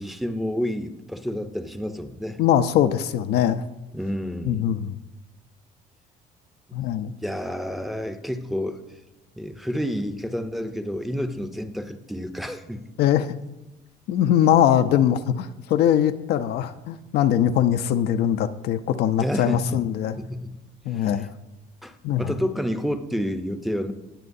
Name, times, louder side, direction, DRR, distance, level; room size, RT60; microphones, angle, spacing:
voice 1, 0.0-2.4 3.9-4.6 7.2-8.8 9.4-12.8 19.2-19.8 20.2-20.6 20.9-21.1 21.8-23.9, equal, ahead, 8 dB, 0.7 m, -29 dB
voice 2, 2.4-3.6 4.4-5.0 6.7-7.1 13.0-13.3 14.1-20.2 20.9-21.3 22.0-22.3, left 10 dB, 75° left, 9 dB, 0.6 m, -21 dB
19.0 x 7.6 x 2.6 m, 0.98 s
cardioid pair, 110°, 17 cm